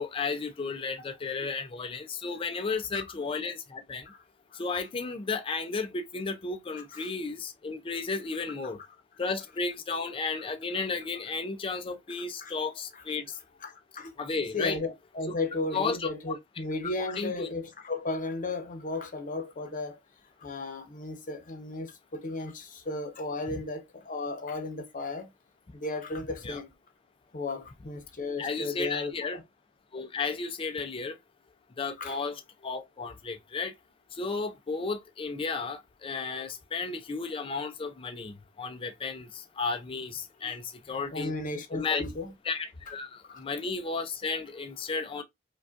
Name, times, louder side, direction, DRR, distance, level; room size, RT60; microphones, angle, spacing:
voice 1, 0.0-4.1 4.5-8.8 9.2-13.4 14.2-14.8 15.7-16.1 17.2-17.5 26.4-26.6 28.4-29.4 29.9-31.2 31.8-33.7 34.1-41.3 41.7-42.0 42.4-45.2, left 4 dB, 30° left, 0.4 m, -33 dB
voice 2, 6.7-7.1 12.4-12.5 12.9-13.0 13.6-14.1 14.5-19.9 20.4-25.2 25.8-26.7 27.3-29.4 32.0-32.2 40.4-40.5 41.1-42.3 43.3-43.4, left 2 dB, 45° left, 0.8 m, -35 dB
4.8 x 2.3 x 2.5 m
head